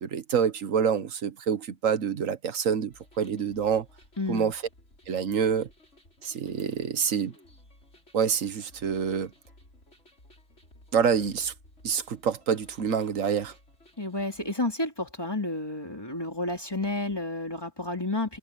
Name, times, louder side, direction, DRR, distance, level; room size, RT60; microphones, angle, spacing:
voice 1, 0.0-3.9 4.3-4.6 5.1-5.7 6.2-7.3 8.1-9.3 10.9-11.5 11.8-13.5, right 7 dB, 80° right, 1.5 m, -27 dB
sound 1, 2.9-14.5, left 1 dB, 60° left, 6.8 m, -57 dB
voice 2, 4.2-4.5 14.0-18.4, left 2 dB, 20° left, 2.8 m, -31 dB
omnidirectional pair, 1.3 m